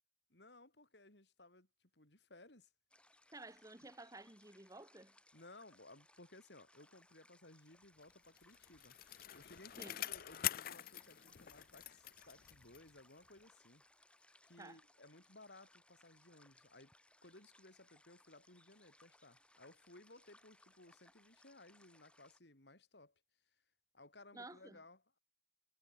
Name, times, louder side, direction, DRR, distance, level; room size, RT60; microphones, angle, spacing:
voice 1, 0.3-1.7 1.9-2.7 5.3-9.0 9.3-13.8 14.4-16.9 17.2-23.1 23.9-25.2, left 2 dB, 75° left, 4.6 m, -60 dB
sound 1, 2.9-22.4, left 1 dB, 5° left, 2.5 m, -69 dB
voice 2, 3.3-5.2 9.8-10.0 14.6-14.8 24.3-24.8, right 2 dB, 20° right, 2.3 m, -53 dB
Bicycle, 8.1-13.0 13.4-13.5, left 13 dB, 55° left, 0.5 m, -45 dB
head